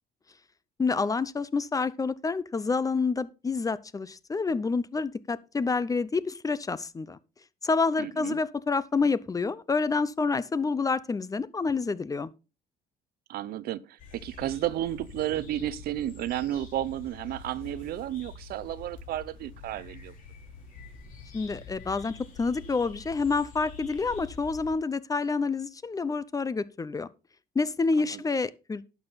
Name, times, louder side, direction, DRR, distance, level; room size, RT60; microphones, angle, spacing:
voice 1, 0.8-7.2 7.6-12.3 21.3-27.1 27.6-28.9, left 4 dB, 20° left, 0.6 m, -28 dB
voice 2, 8.0-8.4 13.3-20.1 28.0-28.2, right 13 dB, 65° right, 0.6 m, -32 dB
sound 1, 14.0-24.7, left 4 dB, 50° left, 3.4 m, -46 dB
11.0 x 7.0 x 4.0 m
cardioid pair, 110°, 17 cm